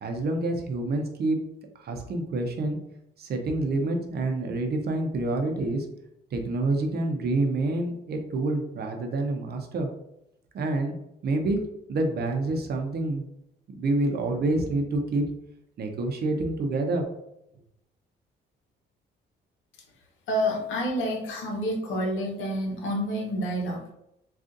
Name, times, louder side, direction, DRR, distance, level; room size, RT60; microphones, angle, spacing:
voice 1, 0.0-1.4 1.8-2.8 3.2-5.8 6.3-9.9 10.5-10.9 11.2-11.6 11.9-13.3 13.7-15.2 15.8-17.0, right 2 dB, 55° right, 4 dB, 0.6 m, -27 dB
voice 2, 20.3-23.8, equal, 80° left, 1 dB, 0.9 m, -28 dB
3.7 x 2.4 x 2.5 m, 0.82 s
cardioid pair, 90°, 20 cm